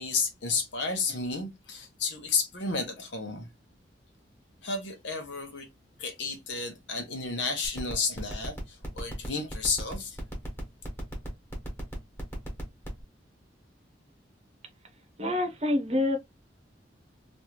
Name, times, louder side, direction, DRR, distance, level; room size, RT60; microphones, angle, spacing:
voice 1, 0.0-3.5 4.6-5.7 6.0-10.2, left 4 dB, 75° left, 1.0 m, -32 dB
sound 1, 7.6-13.0, right 1 dB, 15° left, 1.4 m, -38 dB
voice 2, 15.2-16.2, left 1 dB, 35° right, 0.9 m, -26 dB
3.1 x 2.6 x 3.0 m
head